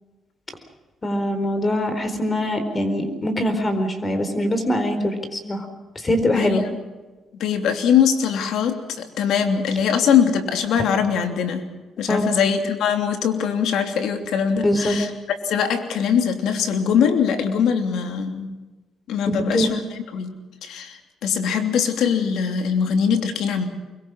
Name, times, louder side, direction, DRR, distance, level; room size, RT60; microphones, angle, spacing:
voice 1, 1.0-5.7 5.9-6.6 12.1-12.3 14.6-14.9 19.3-19.7, left 1 dB, 25° left, 8 dB, 4.3 m, -23 dB
voice 2, 6.3-6.6 7.4-11.7 12.0-15.1 15.4-18.5 19.1-19.8 20.1-20.3 20.6-23.7, left 7 dB, 80° left, 5 dB, 3.1 m, -22 dB
25.0 x 22.5 x 6.4 m, 1.2 s
cardioid pair, 90°, 0 cm